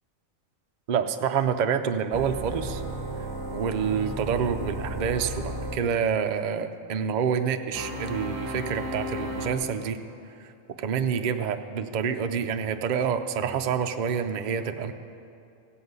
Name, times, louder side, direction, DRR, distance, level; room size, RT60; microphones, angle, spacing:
voice 1, 0.9-2.8 3.5-10.0 10.4-10.5 10.8-14.9, right 7 dB, 55° right, 7 dB, 0.5 m, -27 dB
sound 1, 2.1-5.8 7.7-9.5, equal, 15° right, 1.4 m, -34 dB
15.5 x 5.7 x 8.0 m, 2.5 s
omnidirectional pair, 1.4 m